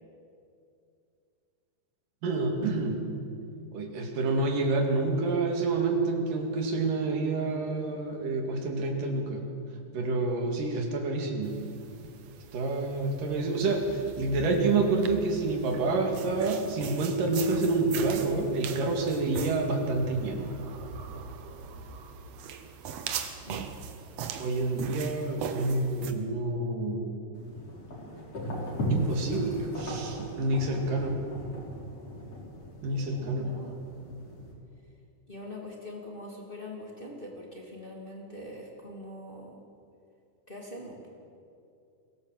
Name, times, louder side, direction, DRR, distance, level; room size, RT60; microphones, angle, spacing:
voice 1, 2.2-3.1 3.7-9.5 9.9-11.6 12.5-20.5 24.4-27.2 28.9-31.2 32.8-33.5, right 3 dB, 80° right, 2 dB, 4.0 m, -28 dB
sound 1, 11.4-26.1, right 6 dB, 60° right, 2.1 m, -40 dB
sound 2, 27.3-34.5, right 1 dB, 50° left, 5.1 m, -36 dB
voice 2, 32.9-33.9 35.3-39.6 40.5-41.0, left 1 dB, 15° left, -2 dB, 2.7 m, -43 dB
23.5 x 17.0 x 7.7 m, 2.5 s
omnidirectional pair, 3.7 m